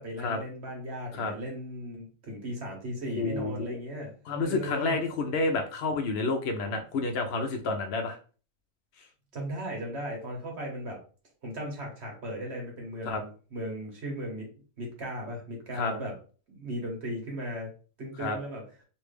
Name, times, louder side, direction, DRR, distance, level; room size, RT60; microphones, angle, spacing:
voice 1, 0.0-5.0 9.3-11.0 11.4-14.5 14.8-16.1 16.5-17.7 18.0-18.6, equal, 55° right, 0 dB, 1.4 m, -37 dB
voice 2, 3.2-3.8 4.3-8.2 13.0-13.2 15.7-15.9 18.2-18.4, left 3 dB, 60° left, 4 dB, 0.7 m, -29 dB
3.2 x 2.6 x 3.3 m, 0.38 s
omnidirectional pair, 1.4 m